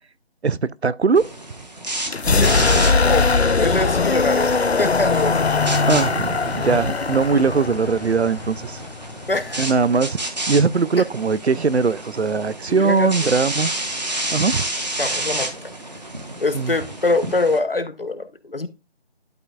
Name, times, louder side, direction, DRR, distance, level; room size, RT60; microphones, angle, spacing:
voice 1, 0.4-1.3 5.9-8.8 9.6-10.2 10.5-13.7 14.3-14.6 16.5-16.7, right 4 dB, 80° right, 0.6 m, -20 dB
sound 1, 1.2-17.6, right 1 dB, 40° right, 1.6 m, -31 dB
sound 2, 2.1-9.8, left 4 dB, 75° left, 0.7 m, -20 dB
voice 2, 2.4-3.3 3.6-4.5 4.8-5.5 9.3-9.6 12.7-13.1 15.0-15.5 16.4-18.7, left 2 dB, 60° left, 1.1 m, -24 dB
12.0 x 5.7 x 2.4 m
figure-of-eight pair, 170°, 32 cm